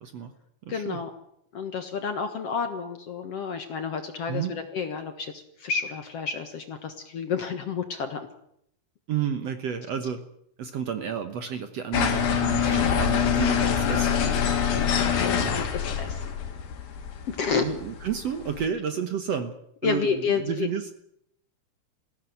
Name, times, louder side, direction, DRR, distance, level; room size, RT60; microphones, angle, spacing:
voice 1, 0.0-0.3 0.6-1.0 4.3-4.5 9.1-10.2 10.6-14.6 17.5-19.5 19.8-20.9, right 8 dB, 60° right, 8 dB, 1.9 m, -31 dB
voice 2, 0.7-1.1 1.5-8.3 14.9-16.4 17.3-17.7 19.8-20.7, left 5 dB, 55° left, 7 dB, 2.0 m, -30 dB
sound 1, 11.9-18.6, left 7 dB, 85° left, 4.0 m, -25 dB
20.0 x 16.5 x 9.4 m, 0.73 s
omnidirectional pair, 4.1 m